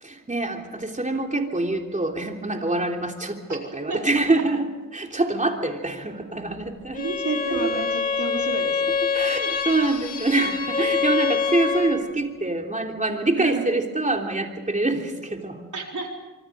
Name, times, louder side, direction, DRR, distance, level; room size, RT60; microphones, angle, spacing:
voice 1, 0.0-7.0 7.5-7.7 9.1-15.6, right 2 dB, 25° right, 2 dB, 3.4 m, -25 dB
Bowed string instrument, 6.9-12.1, left 5 dB, 25° left, 3.2 m, -26 dB
voice 2, 7.0-8.9 13.4-13.8 15.7-16.1, right 3 dB, 60° right, 1 dB, 4.4 m, -30 dB
26.0 x 24.0 x 5.2 m, 1.2 s
wide cardioid pair, 80°, 32 cm